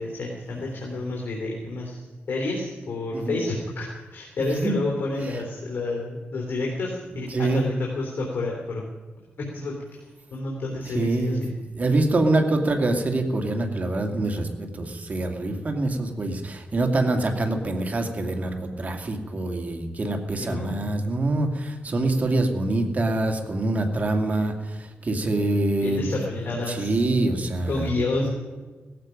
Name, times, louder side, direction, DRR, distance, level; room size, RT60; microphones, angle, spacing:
voice 1, 0.0-8.8 9.4-11.5 20.4-20.9 25.8-26.9 27.7-28.4, left 2 dB, 65° left, -2 dB, 3.5 m, -30 dB
voice 2, 4.5-4.8 7.3-7.7 10.9-11.4 11.7-26.1 26.7-27.9, right 2 dB, 40° right, 4 dB, 2.3 m, -25 dB
17.5 x 15.0 x 5.2 m, 1.3 s
cardioid pair, 90°, 4 cm